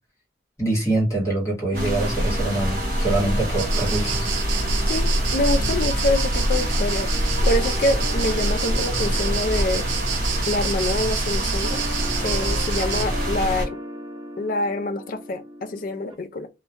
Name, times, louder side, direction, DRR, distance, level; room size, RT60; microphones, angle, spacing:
voice 1, 0.6-4.3, right 2 dB, 15° left, 1.0 m, -24 dB
sound 1, 1.7-16.1, equal, 25° right, 0.5 m, -38 dB
sound 2, 1.7-13.7, equal, 50° right, 0.9 m, -25 dB
sound 3, 3.6-13.1, right 3 dB, 80° right, 0.5 m, -27 dB
voice 2, 4.9-7.1 7.5-9.9 10.5-11.8 12.2-13.8 14.4-16.5, left 2 dB, 45° left, 0.3 m, -26 dB
2.2 x 2.1 x 2.6 m
head